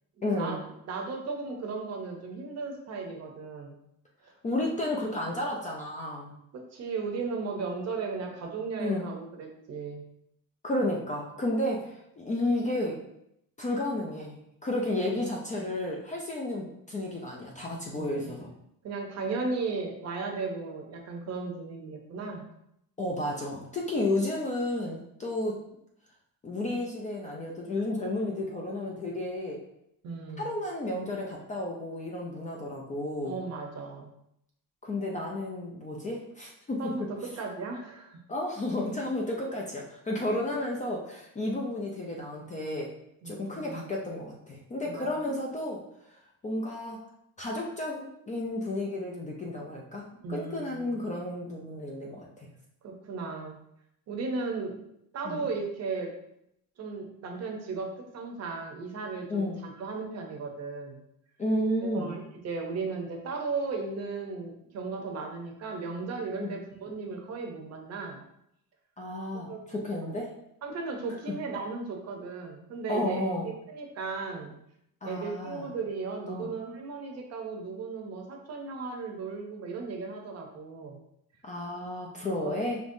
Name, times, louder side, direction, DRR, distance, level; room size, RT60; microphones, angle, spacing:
voice 1, 0.2-0.6 4.4-6.4 8.8-9.1 10.6-13.0 13.6-18.5 23.0-25.6 26.4-29.6 30.4-33.4 34.8-36.9 38.3-42.9 43.2-45.8 46.4-47.0 47.4-52.5 55.2-55.4 59.3-59.6 61.4-62.2 66.4-66.5 69.0-70.4 71.3-71.4 72.9-73.5 75.0-75.7 76.3-76.5 81.4-82.8, left 1 dB, 20° left, -1 dB, 0.4 m, -32 dB
voice 2, 0.9-3.8 4.2-4.3 6.7-10.0 15.1-15.2 18.0-18.3 18.8-22.5 30.0-30.5 33.2-34.1 36.8-38.2 43.2-43.9 44.8-45.3 50.2-50.9 52.8-53.6 54.1-54.8 55.1-56.1 56.8-61.0 61.8-68.2 69.4-69.6 70.0-70.1 70.6-74.5 75.0-81.0 82.4-82.6, right 4 dB, 45° right, 2 dB, 0.7 m, -36 dB
5.2 x 3.0 x 2.6 m, 0.77 s
cardioid pair, 165°, 36 cm